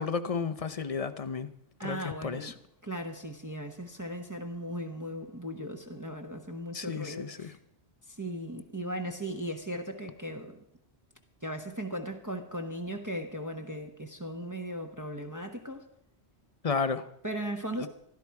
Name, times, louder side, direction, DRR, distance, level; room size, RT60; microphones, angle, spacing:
voice 1, 0.0-1.5 1.8-2.5 6.7-7.5 16.6-17.1 17.8-17.9, left 5 dB, 40° left, 10 dB, 0.7 m, -32 dB
voice 2, 1.8-2.5 2.8-7.6 8.1-10.6 11.4-15.9 17.2-17.9, equal, 15° right, 4 dB, 1.0 m, -37 dB
15.5 x 13.0 x 4.7 m, 0.77 s
omnidirectional pair, 1.1 m